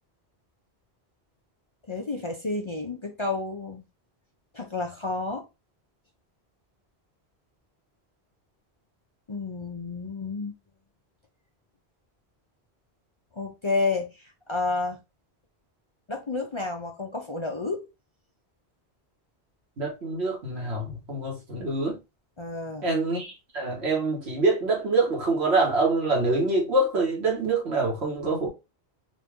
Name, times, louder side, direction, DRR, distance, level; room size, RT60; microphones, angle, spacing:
voice 1, 1.9-3.8 4.5-5.5 9.3-10.6 13.4-15.0 16.1-17.9 22.4-22.9, left 3 dB, 35° left, 0.5 m, -30 dB
voice 2, 19.8-22.0 22.8-28.5, right 2 dB, 85° right, 1.8 m, -25 dB
4.1 x 2.6 x 3.4 m
omnidirectional pair, 1.1 m